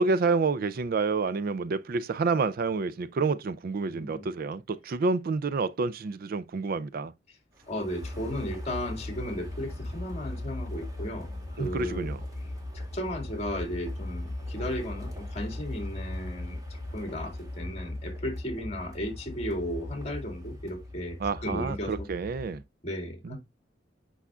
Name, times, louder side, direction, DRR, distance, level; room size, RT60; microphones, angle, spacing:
voice 1, 0.0-7.1 11.6-12.2 21.2-22.6 23.2-23.4, right 4 dB, 50° right, 0.4 m, -28 dB
voice 2, 3.9-4.3 7.7-12.1 12.7-22.1 22.8-23.4, equal, 35° left, 2.1 m, -35 dB
sound 1, 7.5-22.2, equal, 20° right, 2.3 m, -51 dB
sound 2, 7.9-22.6, left 1 dB, 55° left, 1.1 m, -38 dB
8.2 x 5.6 x 2.4 m
head